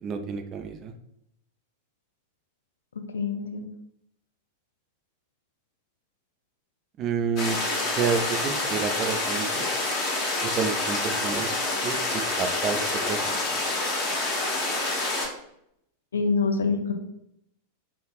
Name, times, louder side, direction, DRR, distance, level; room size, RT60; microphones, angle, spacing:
voice 1, 0.0-0.9 7.0-7.6 8.0-9.7 10.4-11.5 11.8-13.4, right 6 dB, 30° right, 7 dB, 0.4 m, -29 dB
voice 2, 3.1-3.7 16.1-16.9, left 4 dB, 70° left, 6 dB, 0.4 m, -25 dB
sound 1, 7.4-15.3, left 2 dB, 40° left, 1.0 m, -27 dB
4.8 x 2.4 x 2.4 m, 0.77 s
figure-of-eight pair, 90°, 0 cm